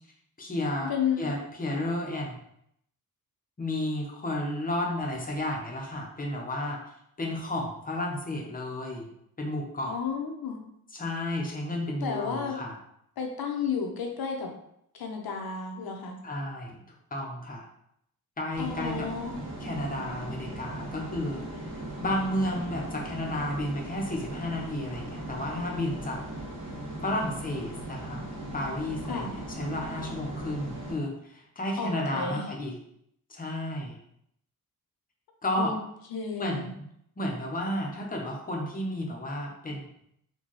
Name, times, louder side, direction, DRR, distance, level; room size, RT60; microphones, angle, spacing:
voice 1, 0.4-0.9 1.2-2.4 3.6-6.8 7.2-9.1 9.4-10.0 10.9-12.7 16.2-16.8 17.1-17.7 18.4-19.1 19.6-21.4 22.0-26.2 27.0-28.3 28.5-32.7 33.3-34.0 35.4-35.7 36.4-36.8 37.2-39.8, left 1 dB, 25° left, -1 dB, 0.6 m, -32 dB
voice 2, 0.9-1.3 9.8-10.6 12.0-12.6 13.2-14.5 14.9-16.2 18.6-19.4 29.1-29.3 31.8-32.5 35.5-35.8 36.1-36.7, left 6 dB, 80° left, 3 dB, 0.8 m, -32 dB
sound 1, 18.5-30.9, right 1 dB, 75° right, 1.5 m, -38 dB
4.4 x 2.2 x 3.0 m, 0.73 s
wide cardioid pair, 170°, 36 cm